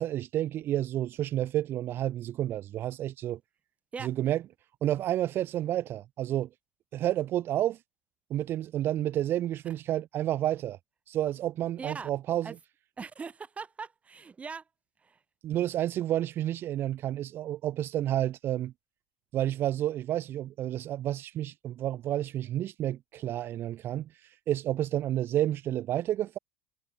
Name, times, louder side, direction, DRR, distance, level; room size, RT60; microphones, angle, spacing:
voice 1, 0.0-3.4 4.0-4.4 4.8-6.5 6.9-7.8 8.3-10.8 11.1-12.5 15.4-18.7 19.3-26.4, right 12 dB, 45° right, 0.4 m, -30 dB
voice 2, 11.8-12.1 12.4-12.6 13.0-14.6 15.0-15.2, right 5 dB, 25° right, 2.1 m, -40 dB
hypercardioid pair, 75°, 5 cm